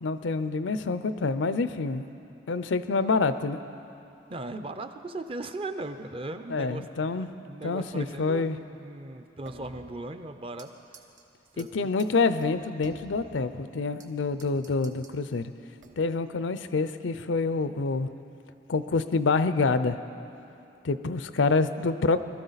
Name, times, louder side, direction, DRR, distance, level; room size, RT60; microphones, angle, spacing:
voice 1, 0.0-2.0 2.5-3.6 6.5-7.3 7.6-8.6 11.6-15.5 16.0-18.1 18.7-20.0 20.8-22.2, left 4 dB, 80° left, 12 dB, 0.5 m, -27 dB
voice 2, 0.7-1.1 4.3-6.8 7.4-10.7 11.5-11.9 21.4-21.5, right 2 dB, 30° right, 8 dB, 0.5 m, -38 dB
sound 1, 9.4-10.7 10.9-11.2 11.6-11.7 12.0-12.1 12.4-14.1 14.4-15.2 15.8-16.2, right 3 dB, 80° right, 1.1 m, -50 dB
21.0 x 13.0 x 4.0 m, 2.8 s
head